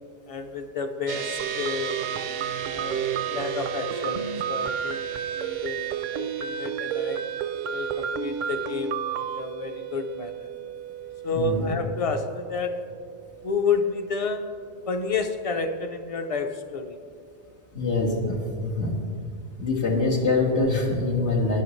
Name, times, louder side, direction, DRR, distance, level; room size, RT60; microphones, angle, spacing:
voice 1, 0.3-2.0 2.7-5.1 5.3-5.8 6.1-7.3 7.7-10.5 11.2-12.8 13.4-14.6 14.9-17.0, left 4 dB, 35° left, 7 dB, 0.7 m, -30 dB
sound 1, 1.1-14.7, right 11 dB, 90° right, 0.9 m, -36 dB
sound 2, 1.4-9.4, right 7 dB, 55° right, 0.5 m, -32 dB
voice 2, 11.3-11.7 17.7-18.9 19.6-21.6, left 3 dB, 85° left, -4 dB, 2.0 m, -24 dB
17.5 x 10.5 x 3.2 m, 2.3 s
omnidirectional pair, 1.1 m